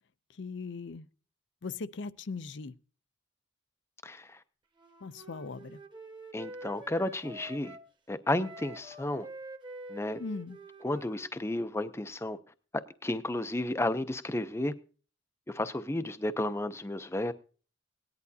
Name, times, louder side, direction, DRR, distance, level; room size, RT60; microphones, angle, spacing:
voice 1, 0.4-1.1 1.6-2.7 5.0-5.8 10.2-10.6, left 4 dB, 65° left, 0.5 m, -39 dB
voice 2, 4.0-4.4 6.3-7.8 8.1-9.3 9.9-10.2 10.8-12.4 13.0-14.7 15.5-17.3, left 1 dB, 15° left, 0.5 m, -32 dB
Wind instrument woodwind instrument, 4.7-7.9 8.4-11.7, right 1 dB, 25° right, 1.1 m, -47 dB
18.0 x 10.5 x 2.7 m
head